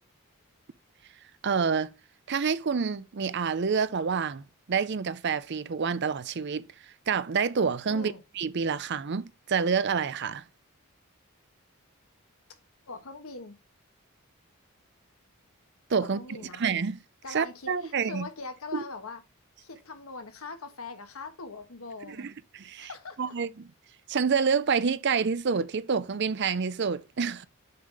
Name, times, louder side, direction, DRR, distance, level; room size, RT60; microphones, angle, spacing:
voice 1, 1.4-1.9 2.3-6.7 7.1-10.4 15.9-16.2 16.6-17.0 17.3-18.3 18.7-18.8 22.1-22.3 22.6-22.9 23.2-23.7 24.1-27.5, right 6 dB, 55° right, 0.5 m, -28 dB
voice 2, 7.9-8.2 12.9-13.6 16.0-16.6 17.2-19.2 19.6-22.3 22.8-23.3, left 3 dB, 75° left, 1.3 m, -42 dB
6.6 x 5.7 x 3.3 m
head